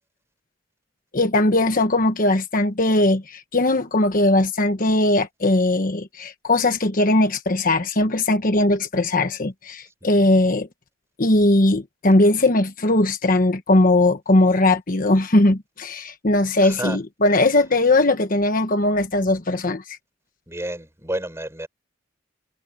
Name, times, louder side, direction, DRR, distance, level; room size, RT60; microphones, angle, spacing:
voice 1, 1.1-10.7 11.2-19.8, left 2 dB, 45° left, 1.3 m, -19 dB
voice 2, 16.6-17.0 20.5-21.7, right 1 dB, 15° right, 5.4 m, -31 dB
head